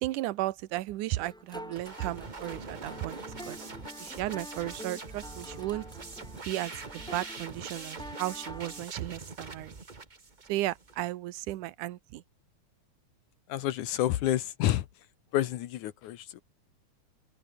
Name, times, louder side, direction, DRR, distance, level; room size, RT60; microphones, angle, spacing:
voice 1, 0.0-3.2 3.5-3.7 4.0-5.9 6.5-9.8 10.5-12.2, right 16 dB, 75° right, 2.4 m, -34 dB
sound 1, 1.2-8.8, equal, ahead, 2.5 m, -46 dB
sound 2, 1.7-11.0, right 3 dB, 55° right, 0.4 m, -44 dB
voice 2, 13.5-14.9 15.3-16.4, left 13 dB, 70° left, 2.3 m, -29 dB
open air
omnidirectional pair, 3.8 m